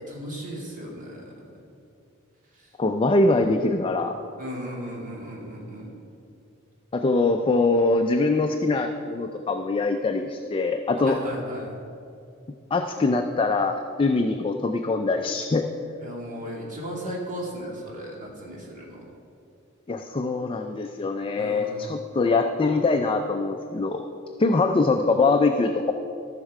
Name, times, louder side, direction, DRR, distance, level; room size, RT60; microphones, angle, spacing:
voice 1, 0.1-1.2 4.4-5.9 11.0-11.7 16.0-19.0 21.4-21.9, equal, 40° right, -3 dB, 2.4 m, -36 dB
voice 2, 2.8-4.2 6.9-11.2 12.7-15.7 19.9-24.0 24.4-25.9, left 3 dB, 25° left, 5 dB, 0.4 m, -23 dB
14.5 x 6.5 x 4.8 m, 2.6 s
head